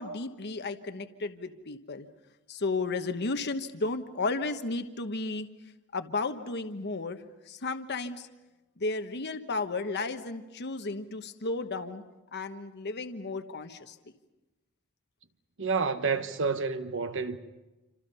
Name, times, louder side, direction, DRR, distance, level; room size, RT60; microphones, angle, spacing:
voice 1, 0.0-2.1 2.5-5.5 5.9-8.3 8.8-12.0 12.3-14.0, left 3 dB, 55° left, 1.1 m, -33 dB
voice 2, 15.6-17.4, right 4 dB, 60° right, 1.3 m, -29 dB
28.0 x 27.0 x 5.6 m
head